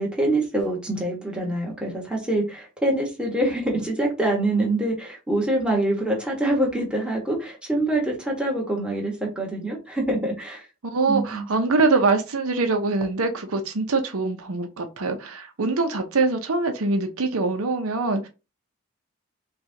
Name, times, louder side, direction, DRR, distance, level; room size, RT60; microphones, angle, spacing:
voice 1, 0.0-10.7 11.1-11.5, right 1 dB, 5° right, 1.3 m, -25 dB
voice 2, 10.8-18.3, right 3 dB, 80° right, 0.7 m, -23 dB
5.8 x 2.4 x 2.8 m
head